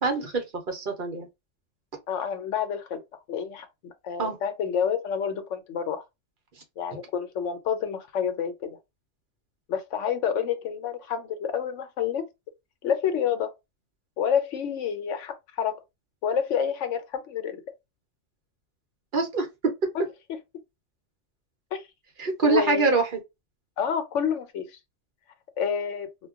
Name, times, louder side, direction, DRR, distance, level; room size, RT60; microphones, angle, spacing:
voice 1, 0.0-1.3 4.2-4.4 19.1-19.9 22.2-23.0, right 4 dB, 50° right, 0.8 m, -25 dB
voice 2, 2.1-6.0 6.8-8.8 9.7-12.3 12.8-13.5 14.2-15.8 16.2-17.6 19.9-20.0 21.7-21.9 22.4-23.0 23.8-24.8 25.6-26.1, left 7 dB, 80° left, 1.0 m, -28 dB
2.3 x 2.2 x 3.5 m
omnidirectional pair, 1.2 m